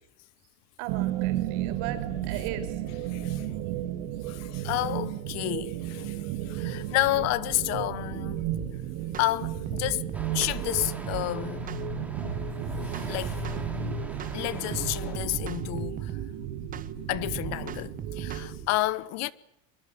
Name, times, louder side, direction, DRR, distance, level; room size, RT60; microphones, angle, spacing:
voice 1, 0.8-2.8, right 10 dB, 65° right, 5.2 m, -37 dB
sound 1, 0.9-18.7, right 9 dB, 90° right, 3.9 m, -33 dB
voice 2, 3.1-3.5 4.2-8.4 9.2-11.7 12.2-12.4 13.1-13.4 14.3-16.2 17.1-19.3, left 17 dB, 45° left, 1.0 m, -30 dB
sound 2, 8.5-8.7 9.1-9.3 9.7-11.3 11.7-11.9 12.2-13.8 14.2-14.4 14.7-16.3 16.7-16.9 17.2-18.5, right 10 dB, 25° right, 1.0 m, -38 dB
sound 3, 10.1-15.2, right 2 dB, 5° right, 3.7 m, -44 dB
24.0 x 23.5 x 8.7 m
cardioid pair, 170°, 35 cm